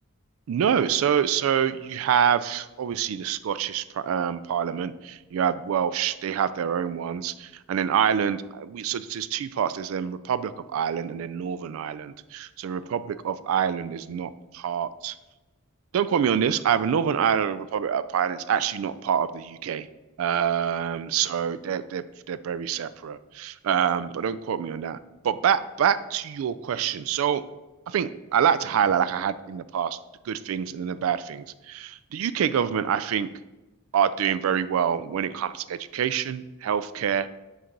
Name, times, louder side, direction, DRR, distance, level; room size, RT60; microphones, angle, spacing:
voice 1, 0.5-15.2 15.9-19.9 20.2-25.0 25.2-27.4 27.9-30.0 30.3-33.3 33.9-37.3, right 8 dB, 75° right, 14 dB, 0.3 m, -26 dB
6.5 x 3.9 x 4.5 m, 1.1 s
head